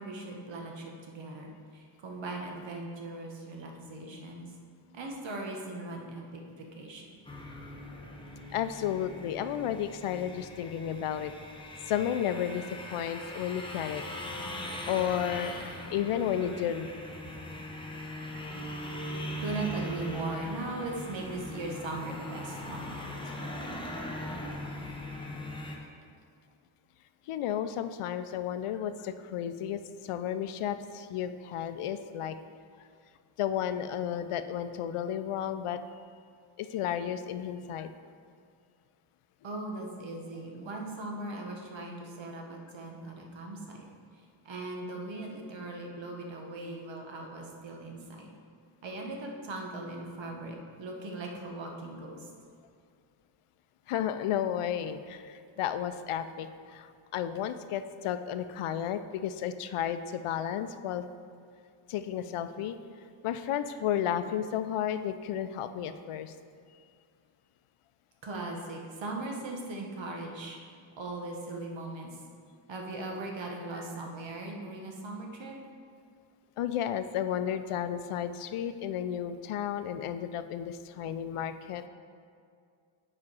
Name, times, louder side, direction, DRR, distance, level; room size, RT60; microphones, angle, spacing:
voice 1, 0.0-4.5 4.9-7.1 19.4-23.3 39.4-43.8 44.4-48.3 48.8-52.3 68.2-70.6 71.0-72.2 72.7-75.5, right 2 dB, 60° right, 1 dB, 1.1 m, -39 dB
sound 1, 7.2-25.7, left 1 dB, 10° left, 0.7 m, -40 dB
voice 2, 8.5-11.3 11.9-14.0 14.9-16.9 18.8-18.9 27.3-32.4 33.4-35.8 36.6-37.9 53.9-61.0 61.9-62.8 63.2-66.3 76.6-81.9, left 9 dB, 85° left, 10 dB, 0.5 m, -33 dB
7.3 x 4.9 x 4.8 m, 2.2 s
wide cardioid pair, 150°, 50 cm